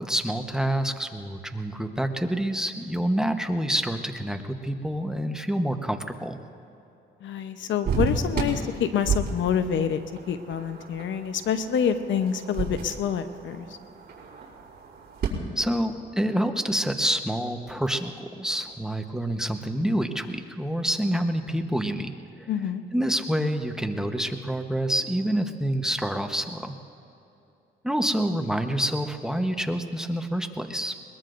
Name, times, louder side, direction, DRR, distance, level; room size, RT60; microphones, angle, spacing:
voice 1, 0.0-6.4 15.6-22.1 22.4-22.5 22.9-26.7 27.8-30.9, right 1 dB, 5° right, 5 dB, 1.0 m, -27 dB
voice 2, 7.2-10.0 10.3-13.7 22.5-22.8, left 8 dB, 70° left, 9 dB, 0.9 m, -27 dB
sound 1, 7.8-15.3, right 4 dB, 50° right, 4.5 m, -32 dB
22.0 x 21.0 x 2.6 m, 2.8 s
cardioid pair, 90°, 20 cm